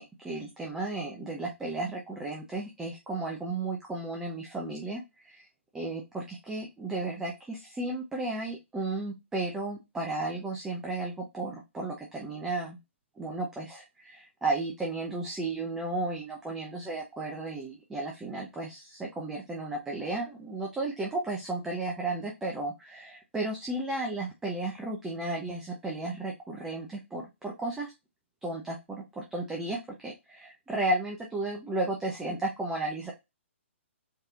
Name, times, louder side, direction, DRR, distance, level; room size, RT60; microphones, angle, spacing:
voice 1, 0.0-5.5 5.7-12.8 13.2-27.9 28.4-33.1, right 2 dB, 5° right, -1 dB, 0.7 m, -34 dB
4.6 x 3.2 x 2.4 m, 0.22 s
figure-of-eight pair, 125°, 7 cm